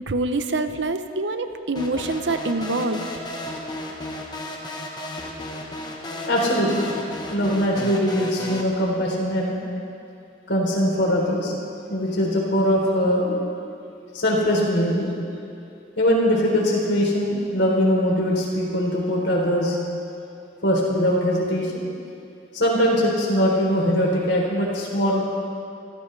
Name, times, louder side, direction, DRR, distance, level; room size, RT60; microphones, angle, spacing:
voice 1, 0.1-3.0, right 2 dB, 70° right, 9 dB, 0.8 m, -25 dB
sound 1, 1.7-8.6, left 1 dB, 20° left, 1.2 m, -34 dB
voice 2, 6.3-6.9 7.3-9.6 10.5-11.5 11.9-13.4 14.1-15.1 16.0-19.8 20.6-21.8 22.5-25.3, equal, 70° left, -2 dB, 3.6 m, -21 dB
24.0 x 15.5 x 3.4 m, 2.6 s
head